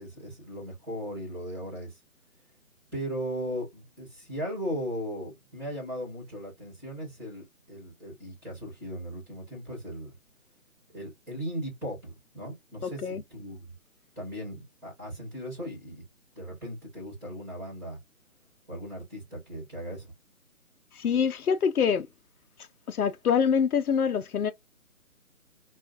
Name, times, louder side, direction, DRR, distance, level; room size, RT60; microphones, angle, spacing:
voice 1, 0.0-2.0 2.9-10.1 10.9-13.6 14.1-16.0 16.3-18.0 18.7-20.1, equal, 5° right, 1.7 m, -37 dB
voice 2, 12.8-13.2 20.9-22.1 22.9-24.5, left 7 dB, 80° left, 0.7 m, -25 dB
3.4 x 2.5 x 2.6 m
hypercardioid pair, 165°, 44 cm